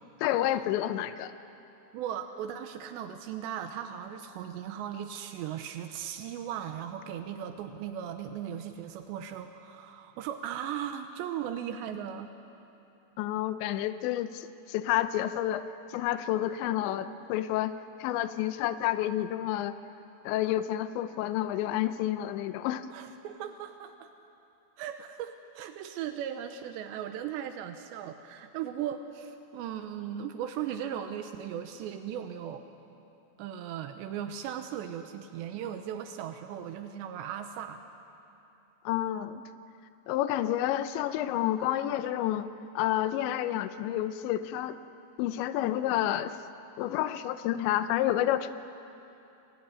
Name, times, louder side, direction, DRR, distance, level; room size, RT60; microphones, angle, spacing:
voice 1, 0.2-1.3 13.2-15.6 15.9-17.7 18.0-19.8 20.2-22.9 38.9-39.4 40.1-42.5 42.8-44.7 45.2-46.4 46.8-48.5, left 13 dB, 90° left, 11 dB, 3.1 m, -29 dB
voice 2, 1.9-12.3 22.9-24.1 24.8-32.7 33.4-37.8, right 9 dB, 85° right, 7 dB, 3.1 m, -37 dB
28.5 x 20.5 x 9.7 m, 2.8 s
omnidirectional pair, 5.0 m